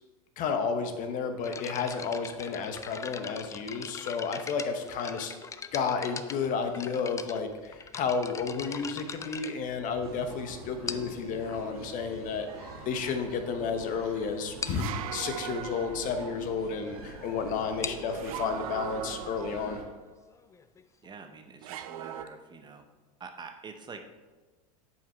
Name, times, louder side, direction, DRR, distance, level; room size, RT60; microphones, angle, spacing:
voice 1, 0.4-5.3 5.7-19.8, left 5 dB, 45° left, 7 dB, 1.0 m, -32 dB
sound 1, 1.4-10.3 10.9-11.3 12.1-12.2 12.8-12.9 13.2-13.4 13.7-13.8 14.1-14.2 14.6-14.9 17.6-21.1, left 5 dB, 15° left, 0.4 m, -41 dB
sound 2, 10.0-19.8, right 3 dB, 90° right, 1.7 m, -44 dB
sound 3, 12.5-13.0 14.6-16.4 18.1-19.8 21.6-22.2, right 11 dB, 70° right, 0.5 m, -40 dB
voice 2, 21.0-22.8 23.2-24.1, right 5 dB, 25° right, 6 dB, 0.7 m, -46 dB
7.3 x 5.8 x 4.6 m, 1.3 s
hypercardioid pair, 100°, 18 cm